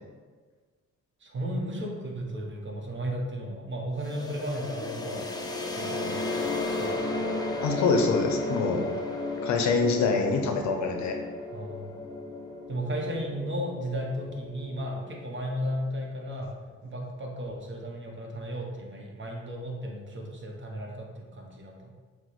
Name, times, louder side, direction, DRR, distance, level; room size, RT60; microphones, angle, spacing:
voice 1, 1.2-5.3 5.7-6.2 6.8-7.0 11.5-12.0 12.7-16.5 16.8-21.9, equal, 40° right, 0 dB, 0.8 m, -34 dB
sound 1, 4.0-15.7, left 2 dB, 15° left, 0.4 m, -34 dB
voice 2, 7.6-8.9 9.4-11.2, left 4 dB, 65° left, 4 dB, 0.6 m, -25 dB
6.2 x 2.1 x 3.1 m, 1.4 s
cardioid pair, 90°, 30 cm